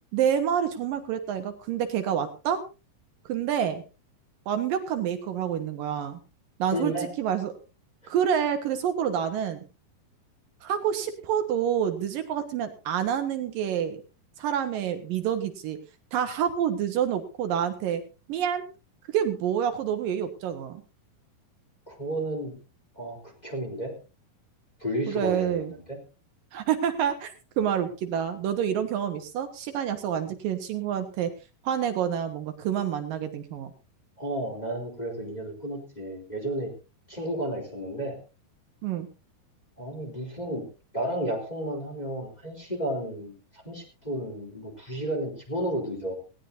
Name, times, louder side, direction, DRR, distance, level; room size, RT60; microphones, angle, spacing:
voice 1, 0.1-2.6 3.3-3.8 4.5-6.2 6.6-7.5 8.1-9.6 10.6-14.0 14.4-15.8 16.1-18.0 18.3-18.6 19.1-20.8 25.1-25.7 26.5-31.3 31.6-33.7 38.8-39.1, right 9 dB, 75° right, 7 dB, 2.8 m, -28 dB
voice 2, 6.7-7.1 8.0-8.1 21.9-22.5 22.9-23.9 24.8-25.8 34.2-36.7 37.1-38.2 39.8-40.6 40.9-46.1, right 1 dB, 10° left, 0 dB, 3.3 m, -32 dB
18.5 x 17.0 x 2.7 m, 0.31 s
omnidirectional pair, 4.3 m